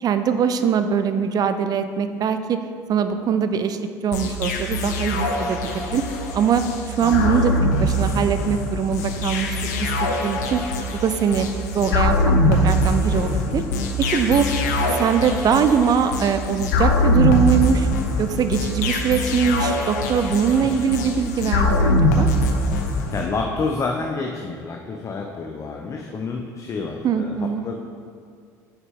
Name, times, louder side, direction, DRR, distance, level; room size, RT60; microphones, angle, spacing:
voice 1, 0.0-2.6 2.9-6.0 6.3-6.6 6.9-7.5 7.8-9.9 10.2-10.6 11.0-11.5 11.7-12.2 12.5-13.6 14.1-14.5 15.0-17.9 18.2-22.3 27.0-27.6, right 7 dB, 45° right, 9 dB, 0.5 m, -22 dB
sound 1, 4.1-23.3, left 1 dB, 85° left, 0.6 m, -22 dB
voice 2, 7.0-7.5 13.2-13.9 20.6-20.8 23.1-27.7, left 4 dB, 35° left, 2 dB, 0.6 m, -29 dB
6.4 x 6.0 x 3.6 m, 2.1 s
hypercardioid pair, 70°, 9 cm